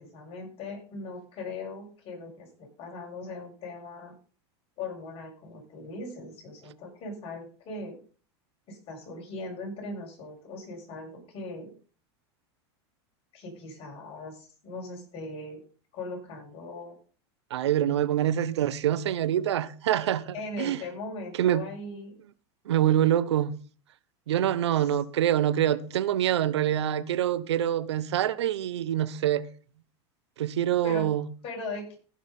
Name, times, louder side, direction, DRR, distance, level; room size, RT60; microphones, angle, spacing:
voice 1, 0.0-4.1 4.8-8.0 8.7-11.7 13.3-15.6 15.9-17.0 20.3-22.1 24.6-24.8 30.8-31.1 31.4-32.0, left 2 dB, 45° left, 7.5 m, -39 dB
voice 2, 17.5-20.8 21.4-21.6 22.7-23.5 24.3-29.4 30.4-31.3, right 11 dB, 90° right, 1.0 m, -25 dB
15.5 x 6.5 x 5.5 m
supercardioid pair, 120°, 14 cm